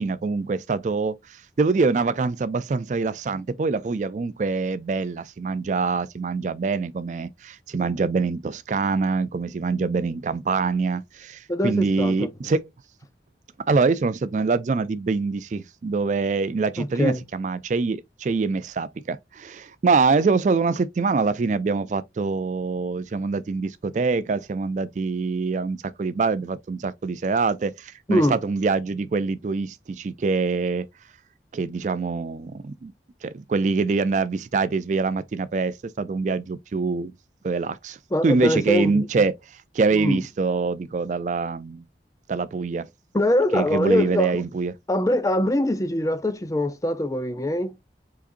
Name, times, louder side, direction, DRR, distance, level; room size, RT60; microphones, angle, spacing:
voice 1, 0.0-12.6 13.7-30.9 31.5-32.9 33.2-37.1 37.4-38.0 38.2-39.3 39.7-41.8 42.3-42.9 43.5-44.7, right 4 dB, 40° right, 0.3 m, -24 dB
voice 2, 11.5-12.3 16.8-17.2 28.1-28.4 38.1-39.2 39.9-40.2 43.1-44.4 44.9-47.8, left 1 dB, 20° left, 0.5 m, -23 dB
5.0 x 4.0 x 2.5 m
head